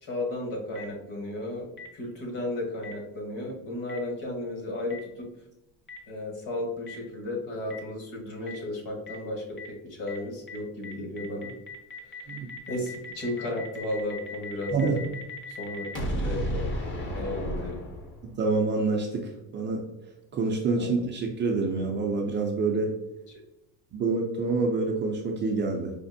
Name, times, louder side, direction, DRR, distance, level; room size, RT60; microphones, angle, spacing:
voice 1, 0.0-1.7 1.9-5.3 6.1-11.5 12.0-12.3 12.7-15.0 15.5-15.8 16.2-16.7 17.1-17.8 20.8-20.9, left 1 dB, 55° left, 1 dB, 1.5 m, -34 dB
Boom, 0.7-0.8 1.8-1.9 2.8-2.9 3.9-4.0 4.9-5.0 5.9-6.0 6.9-7.0 7.7-7.8 8.5-8.6 9.1-9.2 9.6-9.7 10.1-10.2 10.5-10.6 10.8-18.4, left 1 dB, 30° left, 0.7 m, -35 dB
voice 2, 18.2-19.8 20.3-22.9 23.9-25.9, right 3 dB, 30° right, 1 dB, 0.4 m, -27 dB
5.0 x 2.5 x 2.6 m, 0.91 s
cardioid pair, 135°, 40 cm